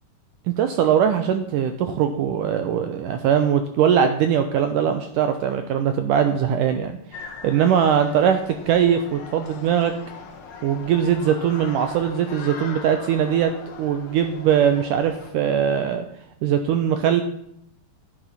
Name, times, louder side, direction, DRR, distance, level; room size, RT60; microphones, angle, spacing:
voice 1, 0.6-8.4 8.7-9.9 10.6-13.5 13.8-16.0 16.4-17.2, right 8 dB, 85° right, 8 dB, 1.8 m, -21 dB
sound 1, 7.1-15.3, left 5 dB, 55° left, 1.5 m, -40 dB
11.5 x 11.0 x 5.7 m, 0.73 s
omnidirectional pair, 4.8 m